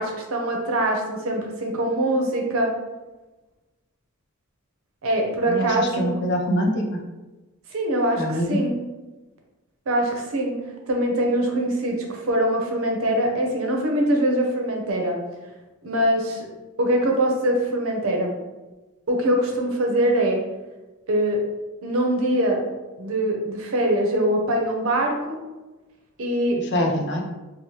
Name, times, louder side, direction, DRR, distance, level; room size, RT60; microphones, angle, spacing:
voice 1, 0.0-2.7 5.0-6.1 7.7-8.7 9.9-10.6 10.9-15.2 15.8-16.5 16.8-18.3 19.1-20.4 21.1-21.4 21.8-22.6 23.0-25.4 26.2-26.6, right 1 dB, 75° right, 1 dB, 0.6 m, -23 dB
voice 2, 5.5-7.0 8.2-8.6 26.7-27.2, equal, 55° left, 2 dB, 0.5 m, -24 dB
3.0 x 2.0 x 2.8 m, 1.1 s
head